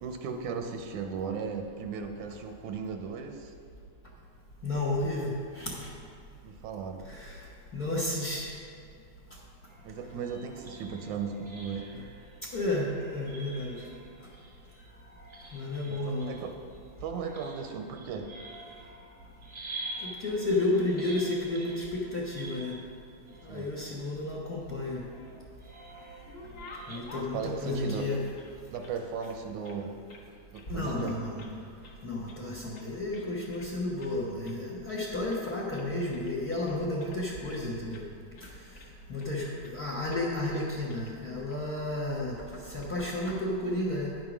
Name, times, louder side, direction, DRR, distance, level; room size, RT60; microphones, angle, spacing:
voice 1, 0.0-3.5 6.4-7.0 9.8-12.1 15.9-16.5 17.0-18.3 23.5-23.7 27.1-28.1 28.7-29.9 30.5-31.2, right 6 dB, 80° right, 5 dB, 1.9 m, -36 dB
voice 2, 4.6-5.9 7.0-7.5 7.7-8.5 12.5-13.8 15.5-16.4 20.0-22.8 23.4-25.0 26.9-28.2 30.7-31.4 32.0-38.1 38.4-38.5 39.1-44.2, left 2 dB, 65° left, -4 dB, 0.9 m, -32 dB
sound 1, 9.7-24.6 25.6-27.0, right 2 dB, 35° right, 0.4 m, -47 dB
sound 2, 24.8-25.6 26.0-28.9 29.2-30.3 30.5-30.7 31.0-31.6 31.8-32.4 32.7-33.7 34.0-34.2 34.4-34.6 34.9-35.5 35.7-37.6 37.9-38.1 38.3-39.3 39.6-39.8 40.1-40.2 40.5-41.1 41.5-41.6 42.5-42.9, left 2 dB, 50° left, 1.5 m, -51 dB
10.5 x 7.5 x 6.0 m, 2.4 s
omnidirectional pair, 3.6 m